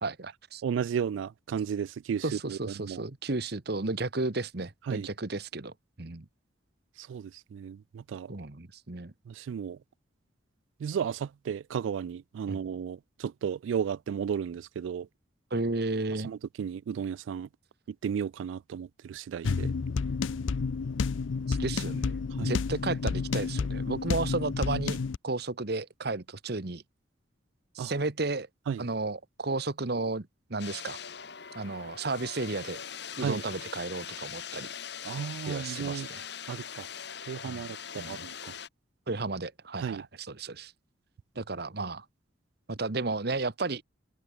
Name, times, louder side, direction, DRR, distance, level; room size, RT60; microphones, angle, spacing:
voice 1, 0.0-0.6 2.2-6.2 8.3-9.1 12.5-12.6 15.5-16.3 21.5-26.8 27.7-28.5 28.8-31.0 31.5-32.8 33.2-34.7 35.5-36.2 37.4-37.6 38.0-38.2 39.1-40.7 41.4-42.0 42.7-43.8, right 3 dB, 55° right, 1.2 m, -33 dB
voice 2, 0.6-3.0 4.9-5.1 7.0-8.3 9.3-9.8 10.8-15.1 16.2-17.5 17.9-19.7 22.4-22.5 27.8-27.9 28.7-28.9 33.2-33.4 35.0-36.1 36.5-36.9 37.3-38.5 39.8-40.0, right 7 dB, 80° right, 0.3 m, -34 dB
sound 1, 19.4-25.2, left 4 dB, 80° left, 0.5 m, -30 dB
sound 2, 30.6-38.7, left 8 dB, 60° left, 1.8 m, -41 dB
open air
head